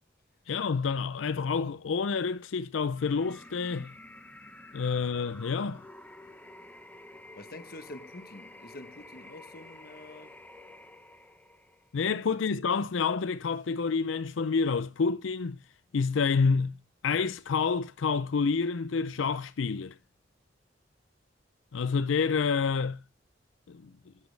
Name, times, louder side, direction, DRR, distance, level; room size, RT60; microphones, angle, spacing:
voice 1, 0.5-3.9 4.7-5.8 11.9-15.6 15.9-16.7 17.0-19.9 21.7-23.0 23.7-23.9, left 5 dB, 90° left, 0.5 m, -28 dB
sound 1, 2.9-12.0, left 1 dB, 10° left, 0.8 m, -50 dB
voice 2, 7.4-10.4 12.3-12.4, left 2 dB, 50° left, 1.0 m, -47 dB
10.0 x 8.4 x 3.3 m
head